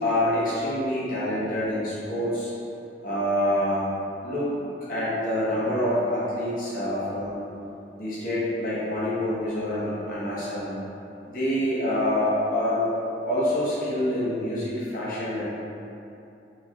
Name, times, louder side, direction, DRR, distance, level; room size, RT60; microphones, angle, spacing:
voice 1, 0.0-2.5 3.0-3.9 4.2-4.5 4.9-7.4 8.0-10.7 11.3-12.8 13.2-15.5, left 1 dB, 50° left, -9 dB, 0.9 m, -26 dB
4.0 x 3.1 x 2.4 m, 2.8 s
head